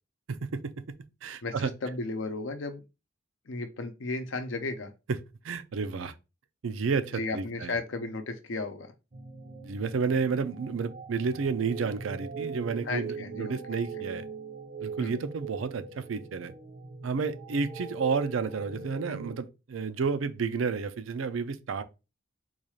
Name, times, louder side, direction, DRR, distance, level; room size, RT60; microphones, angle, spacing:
voice 1, 0.3-0.7 1.2-1.7 5.4-6.1 6.6-7.7 9.6-14.3 14.8-16.5 17.0-21.8, right 5 dB, 85° right, 0.5 m, -31 dB
voice 2, 1.4-2.8 3.5-4.9 7.1-8.9 12.8-13.6 15.0-15.1, left 3 dB, 80° left, 0.6 m, -34 dB
sound 1, 9.1-19.4, right 4 dB, 35° right, 0.6 m, -41 dB
3.9 x 2.4 x 3.1 m
head